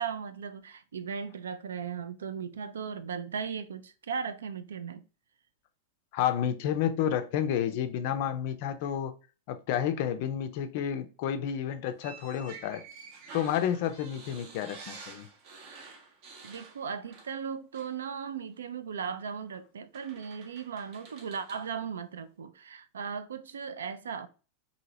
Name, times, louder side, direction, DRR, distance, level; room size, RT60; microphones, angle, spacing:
voice 1, 0.0-5.0 16.4-24.3, right 6 dB, 65° right, 0.3 m, -37 dB
voice 2, 6.1-9.1 9.5-12.8 13.3-15.3, left 9 dB, 50° left, 0.4 m, -30 dB
sound 1, 12.0-17.5 17.7-18.0 19.2-19.3 19.9-21.7, right 4 dB, 45° right, 0.7 m, -49 dB
2.8 x 2.7 x 2.7 m
figure-of-eight pair, 90°, 0 cm